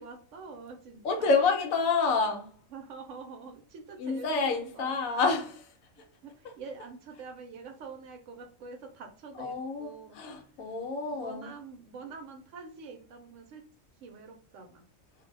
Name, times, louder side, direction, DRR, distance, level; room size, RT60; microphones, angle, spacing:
voice 1, 0.0-1.3 2.7-4.9 6.0-10.2 11.1-13.6 14.0-14.9, right 4 dB, 70° right, 0.9 m, -46 dB
voice 2, 1.0-2.6 4.0-6.1 9.4-11.5, left 4 dB, 80° left, 1.1 m, -29 dB
2.6 x 2.1 x 3.2 m
omnidirectional pair, 1.4 m